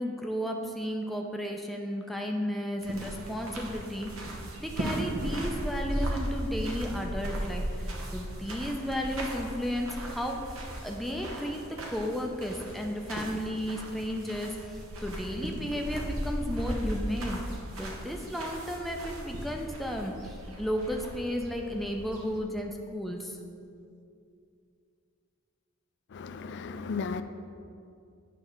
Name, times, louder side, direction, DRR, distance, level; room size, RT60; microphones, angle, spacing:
voice 1, 0.0-11.6 11.9-23.4, equal, ahead, 1 dB, 0.5 m, -34 dB
sound 1, 2.8-22.4, right 1 dB, 75° right, 1.0 m, -37 dB
voice 2, 26.1-27.2, left 5 dB, 55° left, 10 dB, 0.4 m, -35 dB
9.3 x 3.3 x 5.7 m, 2.5 s
head